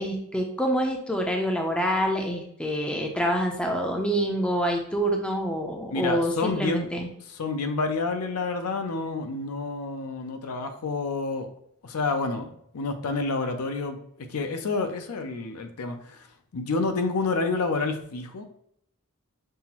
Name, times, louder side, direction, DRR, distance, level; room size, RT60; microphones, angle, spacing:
voice 1, 0.0-7.1, equal, 5° left, 1 dB, 0.4 m, -26 dB
voice 2, 5.9-6.9 7.3-11.5 11.8-16.3 16.5-18.5, left 3 dB, 70° left, 6 dB, 0.5 m, -29 dB
5.5 x 2.0 x 2.8 m, 0.70 s
head